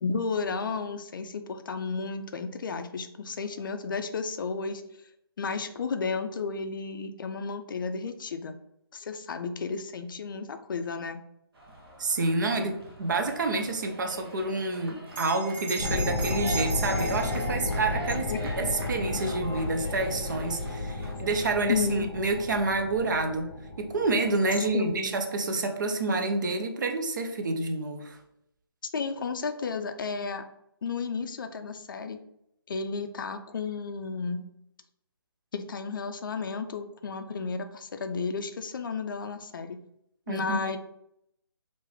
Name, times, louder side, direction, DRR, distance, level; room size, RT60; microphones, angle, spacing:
voice 1, 0.0-4.8 5.4-8.6 8.9-11.2 18.3-18.4 21.7-22.1 24.7-25.1 28.9-30.4 30.8-32.2 32.7-34.4 35.5-39.8 40.3-40.8, left 4 dB, 55° left, 8 dB, 0.4 m, -32 dB
sound 1, 11.5-21.9, right 1 dB, 65° right, 1.1 m, -43 dB
voice 2, 12.0-23.5 23.8-28.2 40.3-40.8, right 3 dB, 50° right, 5 dB, 0.5 m, -28 dB
Bell, 15.1-20.0, right 4 dB, 25° right, 1.1 m, -40 dB
sound 2, 15.8-24.9, left 2 dB, 20° left, 0.8 m, -33 dB
3.6 x 2.5 x 3.1 m, 0.77 s
hypercardioid pair, 160°, 13 cm